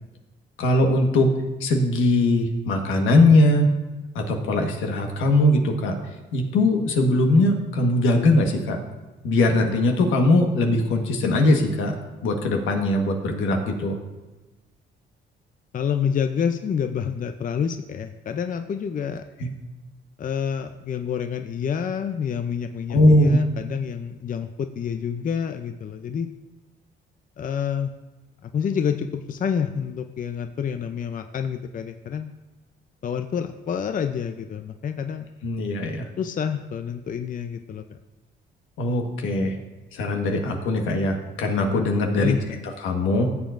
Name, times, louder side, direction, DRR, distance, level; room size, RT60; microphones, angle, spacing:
voice 1, 0.6-1.3 1.6-3.7 4.1-6.0 6.3-8.8 9.2-12.0 12.2-14.0 19.4-19.5 22.9-23.4 35.4-36.1 38.8-39.6 39.9-42.3 42.8-43.3, left 1 dB, 85° left, 3 dB, 1.5 m, -20 dB
voice 2, 15.7-19.2 20.2-26.3 27.4-27.9 28.4-32.3 33.0-35.3 36.2-38.0 42.2-42.6, left 7 dB, 40° left, 8 dB, 0.5 m, -28 dB
15.5 x 7.2 x 2.6 m, 1.1 s
cardioid pair, 90°, 20 cm